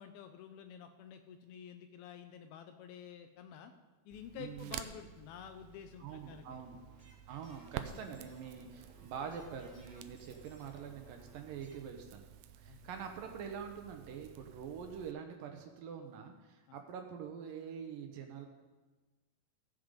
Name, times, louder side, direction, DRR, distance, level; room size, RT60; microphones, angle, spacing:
voice 1, 0.0-3.7 4.1-6.6 12.7-12.9, left 8 dB, 80° left, 7 dB, 2.3 m, -50 dB
Crackle, 4.1-15.1, right 11 dB, 90° right, 2.0 m, -51 dB
voice 2, 4.4-4.8 6.0-6.8 7.3-12.3 12.6-18.5, right 7 dB, 70° right, 4 dB, 2.3 m, -45 dB
sound 1, 6.9-11.8, equal, ahead, 2.7 m, -63 dB
16.0 x 7.6 x 5.2 m, 1.2 s
omnidirectional pair, 4.8 m